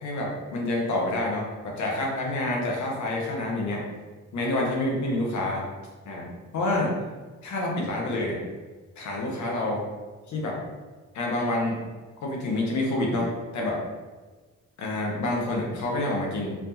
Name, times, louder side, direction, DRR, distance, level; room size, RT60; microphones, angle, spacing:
voice 1, 0.0-3.8 4.3-5.6 6.1-6.3 6.5-6.9 7.4-8.4 9.0-9.8 10.3-10.6 11.1-11.8 12.2-13.8 14.8-16.6, left 2 dB, 70° left, -2 dB, 1.1 m, -28 dB
4.4 x 2.7 x 2.7 m, 1.3 s
cardioid pair, 90°, 30 cm